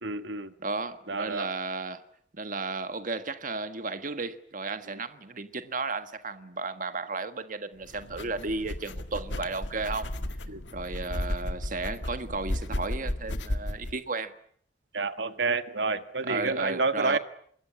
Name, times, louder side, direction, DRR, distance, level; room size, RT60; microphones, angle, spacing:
voice 1, 0.0-0.5 1.1-1.5 10.5-10.6 14.9-17.2, right 3 dB, 75° right, 1.7 m, -29 dB
voice 2, 0.6-2.0 2.3-10.1 10.7-14.3 16.2-17.2, right 3 dB, 45° right, 1.5 m, -34 dB
sound 1, 7.8-14.0, left 1 dB, 90° left, 1.9 m, -34 dB
25.5 x 21.5 x 9.8 m
head